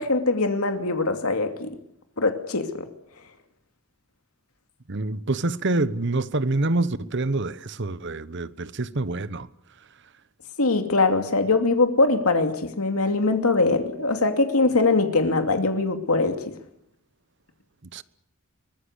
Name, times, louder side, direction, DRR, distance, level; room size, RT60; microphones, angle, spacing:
voice 1, 0.0-1.7 2.2-2.7 10.6-16.5, left 3 dB, 90° left, 2.6 m, -22 dB
voice 2, 4.9-9.5 17.9-18.0, right 2 dB, 55° right, 1.1 m, -26 dB
23.5 x 20.5 x 8.3 m
head